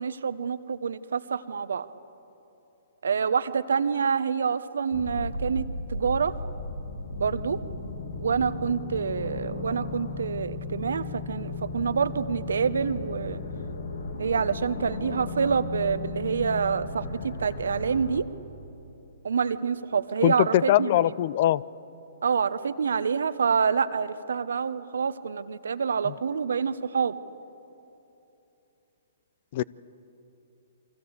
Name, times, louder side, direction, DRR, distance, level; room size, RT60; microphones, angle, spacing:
voice 1, 0.0-1.9 3.0-6.3 7.2-7.6 8.2-13.4 14.2-18.3 19.2-21.0 22.2-27.1, right 6 dB, 75° right, 14 dB, 1.1 m, -27 dB
sound 1, 4.9-18.2, left 3 dB, 70° left, 2.5 m, -35 dB
voice 2, 20.2-21.6 26.1-26.2 29.5-29.6, left 13 dB, 50° left, 22 dB, 0.6 m, -22 dB
29.0 x 24.0 x 8.2 m, 2.9 s
hypercardioid pair, 125°, 0 cm